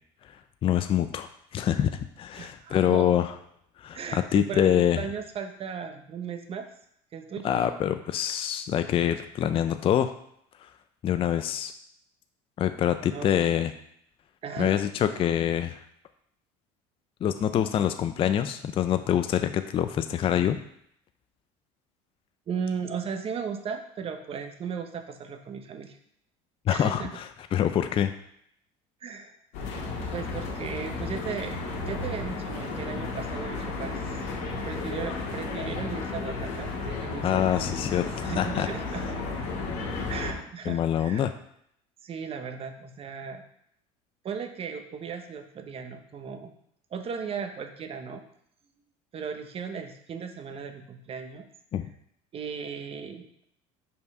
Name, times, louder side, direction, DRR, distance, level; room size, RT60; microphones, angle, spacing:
voice 1, 0.6-3.3 3.8-5.0 7.4-10.1 10.6-10.7 11.0-11.7 12.6-13.7 14.6-15.8 17.2-20.6 26.7-27.3 27.5-28.1 37.2-38.7 40.7-41.3 51.7-51.9, left 10 dB, 35° left, 9 dB, 0.4 m, -25 dB
voice 2, 2.3-3.1 3.9-6.7 7.1-7.7 13.1-13.7 14.4-14.7 22.5-26.0 26.7-27.1 29.0-29.4 30.1-31.6 31.8-34.2 34.6-37.5 37.8-39.2 40.1-41.2 42.0-43.4 44.2-46.5 46.9-48.2 49.1-51.4 52.3-53.3, right 6 dB, 35° right, 7 dB, 0.9 m, -36 dB
sound 1, 29.5-40.3, left 3 dB, 75° left, 1.9 m, -33 dB
5.6 x 4.6 x 5.4 m, 0.72 s
supercardioid pair, 115°, 16 cm